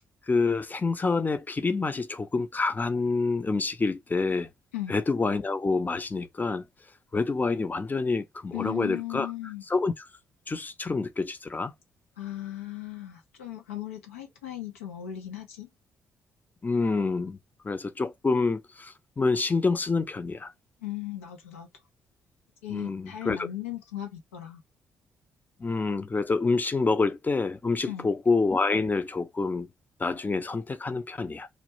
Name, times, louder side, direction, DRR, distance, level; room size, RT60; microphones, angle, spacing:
voice 1, 0.3-4.5 4.9-6.6 7.1-9.3 9.7-9.9 10.5-11.7 16.6-17.4 17.6-20.5 22.7-23.5 25.6-29.7 30.0-31.5, left 3 dB, 25° left, 0.5 m, -27 dB
voice 2, 8.5-9.6 12.2-15.7 20.8-21.7 22.6-24.6 27.9-28.1, left 13 dB, 85° left, 0.5 m, -37 dB
2.3 x 2.1 x 2.8 m
hypercardioid pair, 40°, 7 cm